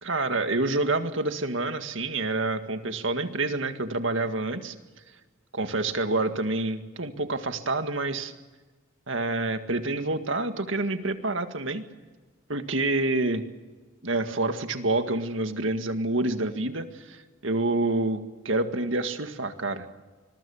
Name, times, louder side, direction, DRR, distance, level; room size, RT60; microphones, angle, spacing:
voice 1, 0.0-4.7 5.5-8.3 9.1-11.8 12.5-13.4 14.0-19.9, right 2 dB, 70° right, 8 dB, 2.0 m, -28 dB
26.0 x 21.5 x 7.2 m, 1.3 s
head